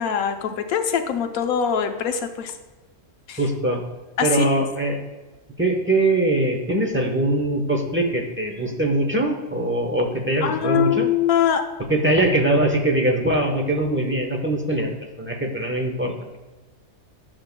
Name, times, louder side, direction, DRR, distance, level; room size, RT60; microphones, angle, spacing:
voice 1, 0.0-2.5 3.3-3.4 4.2-4.5 10.4-11.6, left 8 dB, 80° left, 6 dB, 1.2 m, -23 dB
voice 2, 3.4-3.8 4.2-5.0 5.6-11.1 11.9-14.9 15.2-16.4, right 1 dB, 10° right, 2 dB, 0.7 m, -22 dB
10.5 x 6.9 x 2.2 m, 1.2 s
omnidirectional pair, 1.5 m